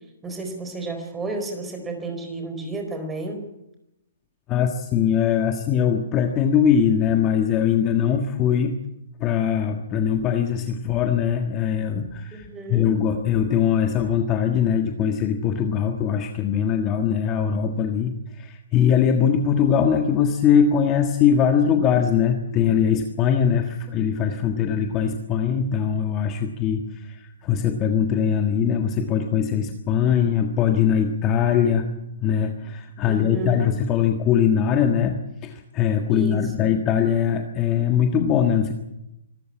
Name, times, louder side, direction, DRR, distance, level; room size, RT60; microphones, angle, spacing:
voice 1, 0.2-3.4 12.3-12.9 33.1-33.6 36.1-36.7, right 2 dB, 10° right, 5 dB, 4.5 m, -32 dB
voice 2, 4.5-8.7 9.2-31.9 32.2-38.7, left 8 dB, 20° left, 5 dB, 1.5 m, -21 dB
25.5 x 14.0 x 8.8 m, 0.87 s
hypercardioid pair, 160°, 0 cm